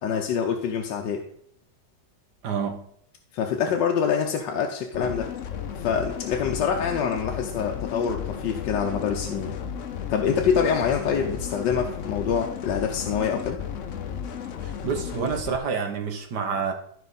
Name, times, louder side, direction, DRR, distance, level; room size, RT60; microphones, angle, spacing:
voice 1, 0.0-1.2 3.3-5.3 5.8-9.5 10.1-13.6, left 7 dB, 90° left, 2 dB, 1.5 m, -25 dB
voice 2, 2.4-2.9 14.6-16.7, right 6 dB, 70° right, 4 dB, 1.8 m, -28 dB
sound 1, 4.9-15.6, left 8 dB, 55° left, 0.9 m, -34 dB
14.0 x 5.6 x 4.1 m, 0.66 s
omnidirectional pair, 1.9 m